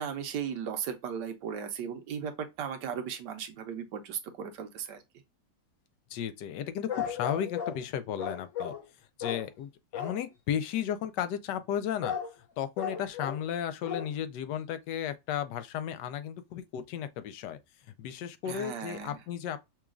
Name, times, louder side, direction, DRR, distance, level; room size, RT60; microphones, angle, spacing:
voice 1, 0.0-5.0 18.4-19.2, right 7 dB, 85° right, 1.4 m, -36 dB
voice 2, 6.1-8.7 9.2-12.2 12.6-17.6 18.0-19.6, left 9 dB, 90° left, 1.2 m, -34 dB
sound 1, 6.9-7.8 8.2-8.9 9.2-9.5 9.9-10.3 12.0-12.3 12.8-13.5 13.8-14.2 14.6-14.7, left 8 dB, 55° left, 1.1 m, -35 dB
5.9 x 2.3 x 2.3 m
omnidirectional pair, 1.8 m